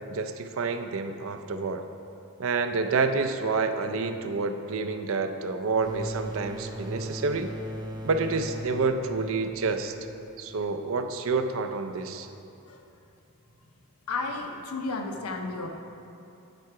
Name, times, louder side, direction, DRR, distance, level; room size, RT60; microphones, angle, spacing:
voice 1, 0.1-1.8 2.4-7.5 8.0-9.9 10.4-12.3, right 4 dB, 60° right, 8 dB, 0.5 m, -28 dB
sound 1, 5.7-11.2, equal, 20° right, 0.6 m, -39 dB
voice 2, 14.1-15.7, left 3 dB, 85° left, 3 dB, 0.8 m, -32 dB
9.2 x 4.7 x 4.7 m, 2.9 s
head